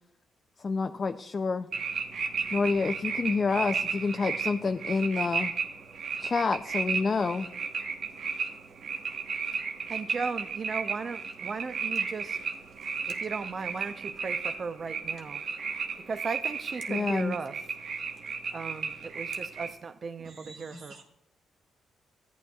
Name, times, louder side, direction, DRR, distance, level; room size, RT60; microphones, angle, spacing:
voice 1, 0.6-1.7 2.5-5.5 6.2-7.5 16.9-17.4, left 4 dB, 40° left, 0.4 m, -28 dB
sound 1, 1.7-19.7, right 5 dB, 65° right, 1.1 m, -34 dB
voice 2, 9.9-12.4 13.1-15.4 16.0-17.6 18.5-21.0, right 4 dB, 45° right, 0.6 m, -36 dB
voice 3, 20.2-21.0, right 2 dB, 85° right, 1.6 m, -48 dB
13.5 x 9.2 x 2.3 m
cardioid pair, 80°, 0 cm